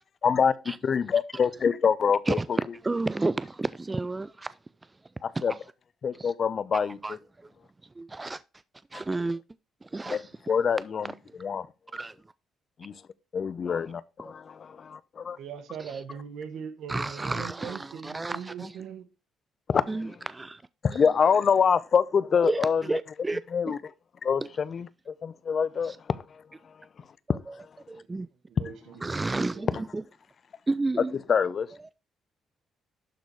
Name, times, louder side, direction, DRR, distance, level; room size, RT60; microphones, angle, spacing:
voice 1, 0.2-0.5 0.8-2.4 5.4-5.5 6.0-7.0 10.1-10.2 10.5-11.1 11.4-11.7 12.8-12.9 13.3-15.4 19.7-19.9 20.8-22.8 23.5-23.8 24.2-26.2 27.3-27.4 31.3-31.7, left 6 dB, 50° left, 0.6 m, -25 dB
voice 2, 2.8-5.0 5.3-5.6 6.1-6.3 6.7-7.5 7.8-8.4 8.9-9.4 9.8-10.3 11.9-12.2 15.8-16.0 16.9-18.8 19.9-20.6 20.9-21.0 22.4-23.4 23.7-23.8 24.4-24.5 25.8-26.0 27.3-28.3 29.0-30.0 30.7-31.1 31.8-31.9, right 3 dB, 20° right, 0.3 m, -32 dB
voice 3, 15.4-19.1 28.5-29.7, right 7 dB, 75° right, 1.4 m, -40 dB
11.5 x 4.2 x 4.7 m
cardioid pair, 90°, 0 cm